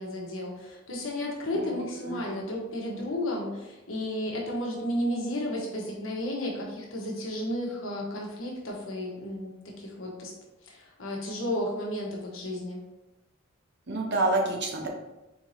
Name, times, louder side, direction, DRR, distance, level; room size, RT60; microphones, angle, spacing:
voice 1, 0.0-10.4 10.7-12.8, left 1 dB, 80° left, -2 dB, 1.1 m, -33 dB
voice 2, 2.0-2.5 13.9-14.9, right 2 dB, 60° right, 1 dB, 0.8 m, -28 dB
4.6 x 3.8 x 2.7 m, 1.0 s
head